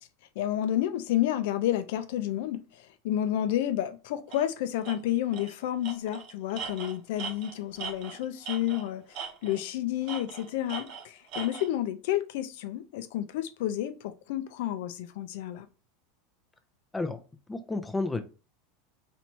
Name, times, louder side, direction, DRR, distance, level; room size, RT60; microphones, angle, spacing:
voice 1, 0.4-15.7, left 12 dB, 70° left, 0.6 m, -30 dB
Tools, 4.3-4.4 4.8-5.0 5.3-5.5 5.8-8.9 9.1-9.7 10.1-11.7, right 6 dB, 55° right, 1.0 m, -39 dB
voice 2, 17.5-18.2, left 3 dB, 10° left, 0.5 m, -31 dB
4.3 x 3.3 x 2.9 m
supercardioid pair, 140°, 0 cm